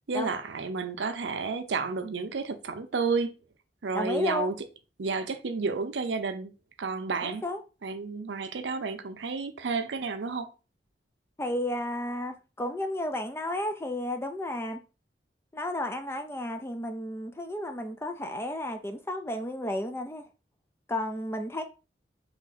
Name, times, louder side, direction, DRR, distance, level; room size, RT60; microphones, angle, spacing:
voice 1, 0.1-3.3 3.8-4.5 5.0-6.5 6.8-7.4 7.8-10.5, right 4 dB, 90° right, 0.6 m, -31 dB
voice 2, 3.9-4.5 7.2-7.6 11.4-14.8 15.5-20.2 20.9-21.6, left 1 dB, 15° left, 0.4 m, -33 dB
3.3 x 2.8 x 4.0 m
head